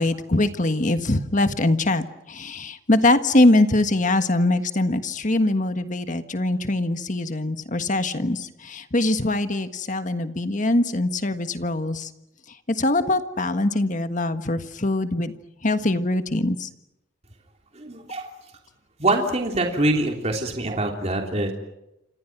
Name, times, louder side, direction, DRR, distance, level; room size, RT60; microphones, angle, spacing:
voice 1, 0.0-12.1 12.8-15.3 15.6-16.7, left 2 dB, 40° left, 9 dB, 1.6 m, -22 dB
voice 2, 17.7-18.3 19.0-21.5, right 2 dB, 35° right, 2 dB, 3.3 m, -24 dB
29.0 x 26.5 x 6.1 m, 0.89 s
head